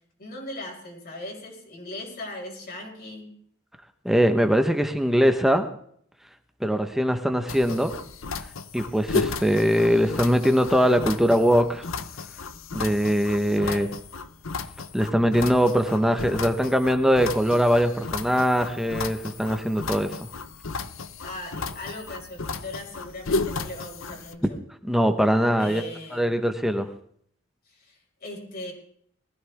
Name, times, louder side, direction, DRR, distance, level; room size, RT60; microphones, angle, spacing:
voice 1, 0.2-3.3 13.6-14.0 21.2-24.6 25.6-26.4 27.7-28.7, left 1 dB, 50° left, -1 dB, 5.6 m, -39 dB
voice 2, 4.0-5.7 6.6-7.9 8.7-11.8 12.7-13.9 14.9-20.2 24.8-25.8 26.1-26.9, equal, ahead, 7 dB, 1.1 m, -22 dB
sound 1, 7.5-24.3, left 3 dB, 90° left, 0.9 m, -34 dB
20.5 x 15.5 x 3.6 m, 0.63 s
head